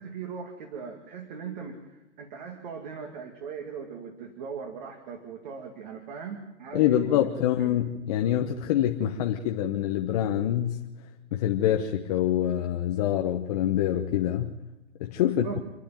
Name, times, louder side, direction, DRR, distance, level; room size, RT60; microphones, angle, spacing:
voice 1, 0.0-7.8 15.2-15.6, right 6 dB, 40° right, 2.3 m, -39 dB
voice 2, 6.7-10.9 11.3-14.5 15.0-15.5, left 11 dB, 30° left, 1.0 m, -25 dB
28.5 x 10.0 x 9.2 m
hypercardioid pair, 155°, 36 cm